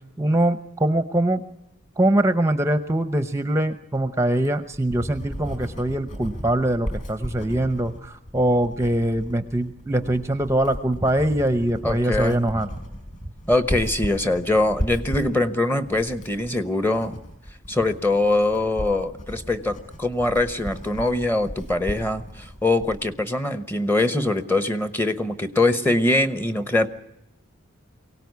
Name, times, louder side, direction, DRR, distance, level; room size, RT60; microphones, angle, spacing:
voice 1, 0.2-1.4 2.0-12.7, right 1 dB, 15° right, 9 dB, 0.8 m, -23 dB
Writing, 4.4-23.0, equal, 35° left, 5.7 m, -35 dB
voice 2, 11.8-12.4 13.5-17.2 17.7-26.9, left 2 dB, 10° left, 11 dB, 1.0 m, -23 dB
23.5 x 17.5 x 9.5 m, 0.85 s
head